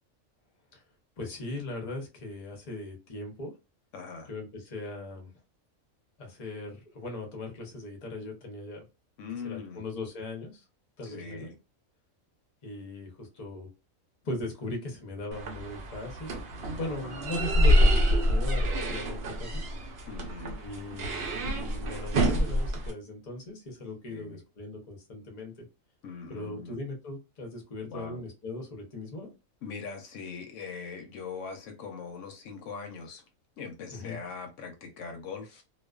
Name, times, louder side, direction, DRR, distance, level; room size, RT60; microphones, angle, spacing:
voice 1, 1.2-3.5 4.3-5.3 6.2-8.8 9.3-10.7 11.0-11.5 12.6-13.7 14.2-16.4 16.8-19.6 20.6-25.5 26.3-29.3 33.9-34.2, left 2 dB, 35° left, 0.7 m, -39 dB
voice 2, 3.9-4.3 9.2-9.8 11.0-11.6 16.8-17.4 20.1-20.6 24.1-24.4 26.0-26.8 27.9-28.2 29.6-33.2 33.6-35.6, left 5 dB, 75° left, 0.9 m, -41 dB
sound 1, 15.3-22.9, equal, 60° right, 0.8 m, -27 dB
2.4 x 2.3 x 2.2 m
omnidirectional pair, 1.4 m